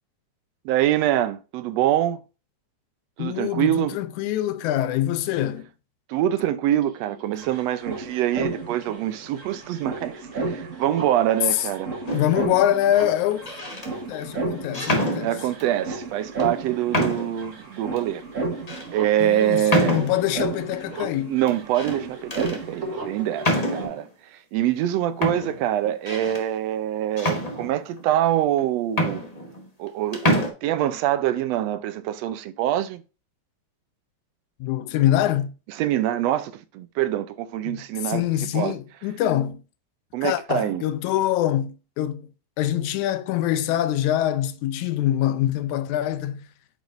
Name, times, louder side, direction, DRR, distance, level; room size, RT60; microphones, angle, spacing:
voice 1, 0.6-2.2 3.2-3.9 6.1-11.9 15.2-18.2 18.9-20.0 21.3-29.2 29.8-33.0 35.8-38.2 38.5-38.7 40.1-40.8, right 12 dB, 75° right, 1.6 m, -25 dB
voice 2, 3.2-5.7 11.5-11.7 12.1-13.5 14.1-15.3 19.2-21.4 34.6-35.5 37.7-39.6 40.2-42.3 42.6-46.5, left 12 dB, 90° left, 2.1 m, -24 dB
sound 1, 6.8-6.9 7.1-23.8, right 3 dB, 40° right, 1.2 m, -33 dB
sound 2, 12.1-12.5 13.3-13.9 14.7-15.7 16.4-16.5 16.9-17.4 18.0-18.1 18.7-18.9 19.7-20.4 21.5-22.0 22.3-22.6 23.4-24.0 24.8-24.9 25.2-26.4 27.2-28.0 28.6-28.7 28.9-29.9 30.1-30.5, equal, 60° left, 0.4 m, -26 dB
9.1 x 5.1 x 2.5 m
omnidirectional pair, 3.3 m